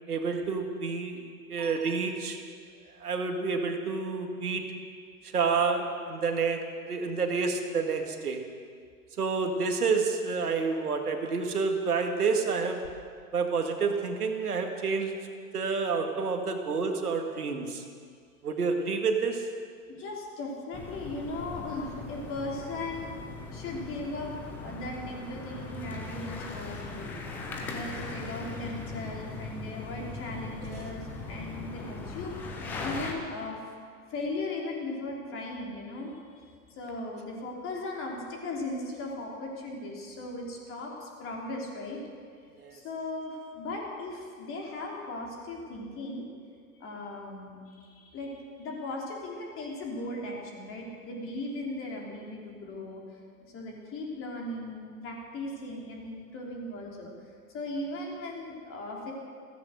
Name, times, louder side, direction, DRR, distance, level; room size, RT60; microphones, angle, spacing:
voice 1, 0.1-2.4 3.0-4.6 5.2-8.4 9.2-12.8 13.3-15.2 15.5-17.8 18.4-19.5 30.7-30.8 42.6-42.8, right 4 dB, 75° right, 4 dB, 1.9 m, -29 dB
voice 2, 19.9-23.1 23.5-24.3 24.6-27.1 27.6-33.6 34.1-36.2 36.7-42.0 42.7-46.2 46.7-57.1 57.5-59.1, left 2 dB, 30° left, -1 dB, 3.5 m, -38 dB
sound 1, 20.7-33.1, left 3 dB, 5° left, 0.3 m, -39 dB
15.5 x 14.0 x 6.4 m, 2.1 s
figure-of-eight pair, 105°, 46 cm